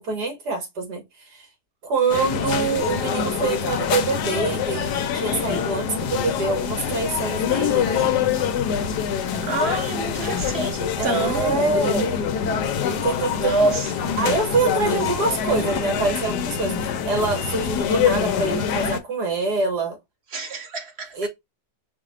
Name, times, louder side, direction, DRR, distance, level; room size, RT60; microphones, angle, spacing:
voice 1, 0.0-1.5 1.8-8.2 11.0-12.3 12.9-13.7 14.2-20.0 21.1-21.3, right 3 dB, 70° right, 2.0 m, -25 dB
sound 1, 2.1-19.0, left 7 dB, 75° left, 1.3 m, -25 dB
voice 2, 9.4-11.7 13.4-14.2 20.3-21.1, right 2 dB, 45° right, 1.1 m, -26 dB
5.0 x 2.2 x 3.7 m
omnidirectional pair, 1.8 m